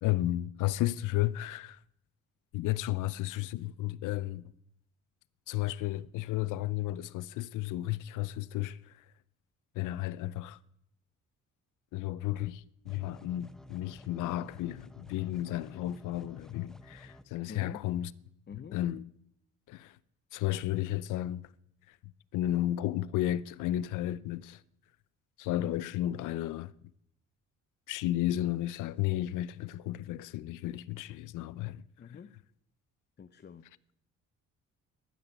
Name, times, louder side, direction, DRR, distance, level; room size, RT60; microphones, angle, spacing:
voice 1, 0.0-1.8 2.5-4.4 5.5-9.0 9.7-10.6 11.9-18.1 18.7-19.0 19.7-20.0 20.3-21.4 22.3-24.6 25.4-26.7 27.9-31.8, left 14 dB, 90° left, 0.6 m, -33 dB
sound 1, 12.9-17.2, left 1 dB, ahead, 0.9 m, -52 dB
voice 2, 17.5-17.9 18.5-18.9 32.0-32.4 33.2-33.7, left 7 dB, 35° left, 0.7 m, -46 dB
12.5 x 9.2 x 9.3 m
cardioid pair, 90°, 30 cm